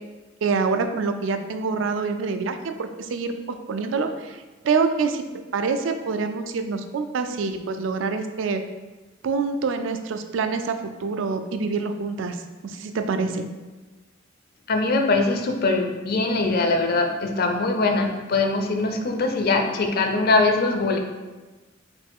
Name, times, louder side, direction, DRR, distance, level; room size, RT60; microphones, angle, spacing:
voice 1, 0.4-3.3 3.7-5.2 5.5-8.6 9.2-13.5, right 4 dB, 70° right, 7 dB, 0.4 m, -26 dB
voice 2, 14.7-21.0, left 3 dB, 50° left, 4 dB, 0.5 m, -22 dB
5.0 x 2.4 x 3.5 m, 1.2 s
head